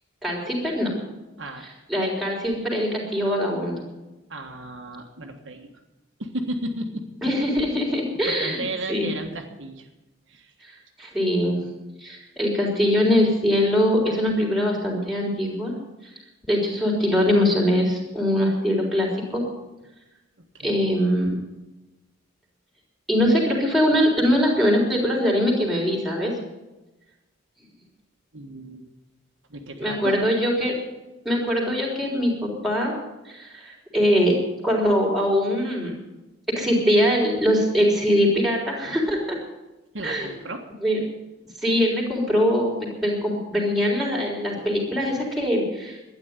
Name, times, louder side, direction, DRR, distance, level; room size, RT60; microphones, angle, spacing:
voice 1, 0.2-0.9 1.9-3.8 7.2-8.6 8.9-9.1 11.0-11.7 12.0-15.7 16.5-19.4 20.6-21.4 23.1-26.3 29.8-30.8 31.3-32.9 33.3-34.4 34.6-35.9 36.6-39.4 40.0-40.3 40.8-41.0 41.6-46.0, equal, ahead, -3 dB, 3.6 m, -22 dB
voice 2, 4.3-5.7 6.2-7.0 8.2-9.9 10.3-10.5 20.4-20.8 28.3-28.9 29.5-30.2 39.9-40.6, right 1 dB, 60° right, 2 dB, 1.6 m, -34 dB
12.5 x 9.7 x 9.5 m, 1.0 s
head